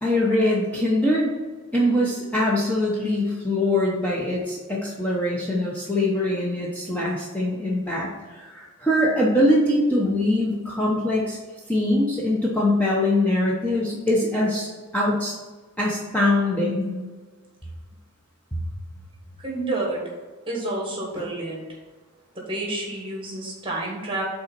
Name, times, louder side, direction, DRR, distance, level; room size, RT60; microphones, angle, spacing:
voice 1, 0.0-1.3 1.7-11.4 11.7-15.4 15.8-17.0 21.2-21.3, left 1 dB, 5° left, -5 dB, 0.8 m, -23 dB
voice 2, 19.4-20.0 20.5-21.6 22.3-24.3, right 2 dB, 25° right, -1 dB, 1.4 m, -29 dB
5.4 x 4.0 x 5.3 m, 1.3 s
head